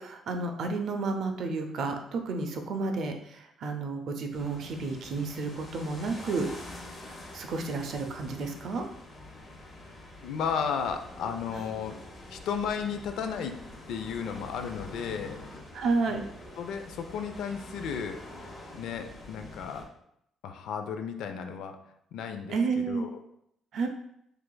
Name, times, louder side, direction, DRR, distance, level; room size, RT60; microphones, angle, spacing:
voice 1, 0.0-6.5 7.3-8.8 15.7-16.3 22.5-23.1 23.7-23.9, right 3 dB, 55° right, 5 dB, 0.5 m, -31 dB
sound 1, 4.3-19.8, left 1 dB, 30° left, 1.0 m, -46 dB
voice 2, 10.2-12.0 12.3-13.6 13.9-15.4 16.1-16.2 16.6-18.2 18.7-19.8 20.4-21.8 22.1-23.1, left 7 dB, 75° left, 6 dB, 0.4 m, -34 dB
4.7 x 3.3 x 2.2 m, 0.74 s
cardioid pair, 165°, 0 cm